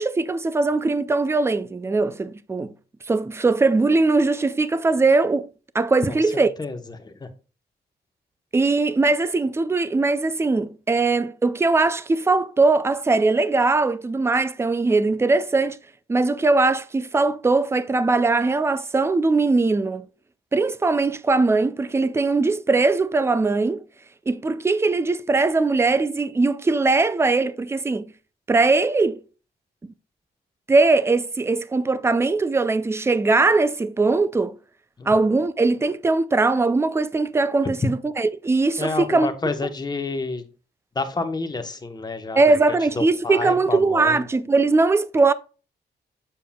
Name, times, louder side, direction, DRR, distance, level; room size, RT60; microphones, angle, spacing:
voice 1, 0.0-2.7 3.1-5.5 5.7-6.5 8.5-15.8 16.1-20.1 20.5-23.8 24.3-28.1 28.5-29.2 30.7-34.6 35.1-39.3 42.4-45.3, right 3 dB, 15° right, 0.4 m, -20 dB
voice 2, 6.3-7.3 35.0-35.1 38.8-40.4 40.9-42.4 42.7-44.2, left 3 dB, 25° left, 1.0 m, -29 dB
7.3 x 6.7 x 2.3 m
cardioid pair, 115°, 18 cm